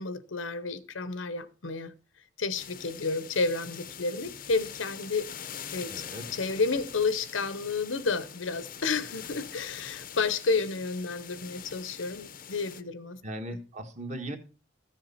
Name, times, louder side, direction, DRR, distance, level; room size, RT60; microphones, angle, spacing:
voice 1, 0.0-1.9 2.4-5.3 5.7-5.9 6.3-13.2 13.5-13.6, left 4 dB, 85° left, 1.0 m, -31 dB
sound 1, 2.5-12.8, left 8 dB, 45° left, 0.7 m, -44 dB
voice 2, 5.9-6.3 13.2-14.4, right 1 dB, 35° right, 1.4 m, -38 dB
14.0 x 7.5 x 4.2 m
head